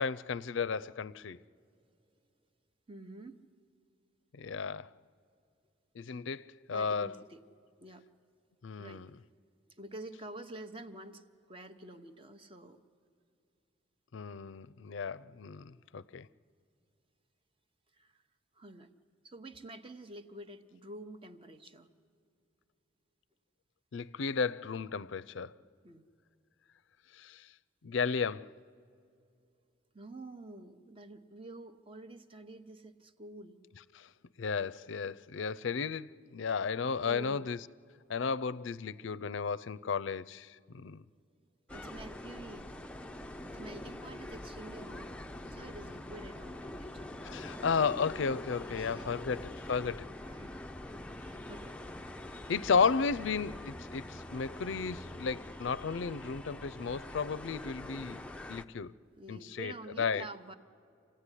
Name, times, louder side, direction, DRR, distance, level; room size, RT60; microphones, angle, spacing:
voice 1, 0.0-1.4 4.3-4.9 6.0-7.1 8.6-9.1 14.1-16.3 23.9-25.5 27.1-27.5 27.8-28.5 33.9-34.1 34.4-37.6 38.1-41.0 47.2-50.1 52.5-58.2 58.5-58.9 59.3-59.7 60.0-60.3, left 5 dB, 70° left, 0.5 m, -34 dB
voice 2, 2.9-3.4 6.7-7.4 7.8-8.0 8.8-9.0 9.7-12.8 17.9-18.2 18.5-18.9 19.2-21.9 25.8-26.1 29.9-33.6 37.0-37.5 41.7-42.7 43.4-47.1 48.7-49.1 50.3-51.8 52.3-52.5 52.8-52.9 53.6-53.8 59.2-60.5, right 1 dB, 25° right, 0.9 m, -48 dB
sound 1, 41.7-58.6, left 1 dB, 5° left, 0.5 m, -44 dB
27.5 x 16.0 x 9.9 m
head